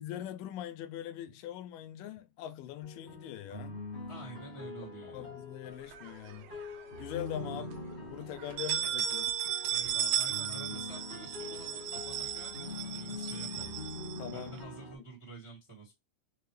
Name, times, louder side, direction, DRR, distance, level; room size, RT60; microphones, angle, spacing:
voice 1, 0.0-3.8 5.1-6.5 7.0-9.3 14.2-14.6, left 11 dB, 85° left, 2.3 m, -42 dB
sound 1, 2.8-15.0, left 3 dB, 30° left, 1.2 m, -44 dB
voice 2, 4.1-5.3 7.4-7.7 9.7-15.9, right 3 dB, 20° right, 0.8 m, -49 dB
sound 2, 5.9-6.8 7.2-7.3 7.7-7.8 8.4-14.6, right 10 dB, 80° right, 2.2 m, -35 dB
6.5 x 2.3 x 3.1 m
omnidirectional pair, 3.9 m